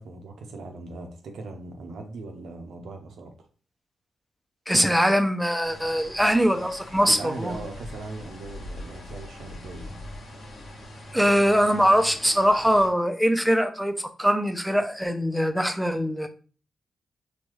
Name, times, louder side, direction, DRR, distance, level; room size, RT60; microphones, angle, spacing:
voice 1, 0.0-3.3 7.0-10.0, right 3 dB, 80° right, 4 dB, 0.7 m, -39 dB
voice 2, 4.7-7.6 11.1-16.3, equal, ahead, 6 dB, 0.5 m, -22 dB
sound 1, 5.6-12.9, left 1 dB, 70° left, 1.1 m, -42 dB
4.0 x 2.2 x 3.1 m, 0.39 s
cardioid pair, 75°, 0 cm